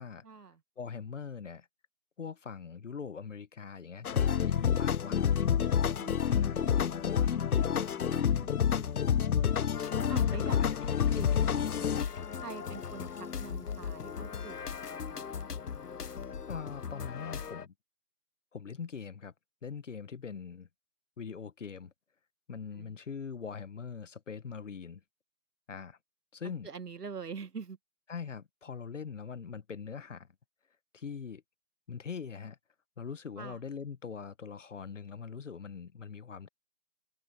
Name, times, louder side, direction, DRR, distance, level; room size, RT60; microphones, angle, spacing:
voice 1, 0.2-0.6 6.0-7.2 7.7-9.6 10.1-11.9 12.4-15.6 22.7-22.9 26.6-27.8 33.4-33.6, right 5 dB, 85° right, 2.0 m, -46 dB
voice 2, 0.8-1.7 2.2-5.3 6.2-6.7 16.5-17.7 18.5-19.3 19.6-20.7 21.2-21.9 22.5-25.0 25.7-26.0 26.3-26.7 28.1-30.3 30.9-31.4 31.9-32.6 33.0-36.5, left 6 dB, 50° left, 1.2 m, -42 dB
sound 1, 4.0-12.0, left 8 dB, 70° left, 0.8 m, -28 dB
sound 2, 9.7-17.7, left 6 dB, 85° left, 1.2 m, -39 dB
hypercardioid pair, 170°, 46 cm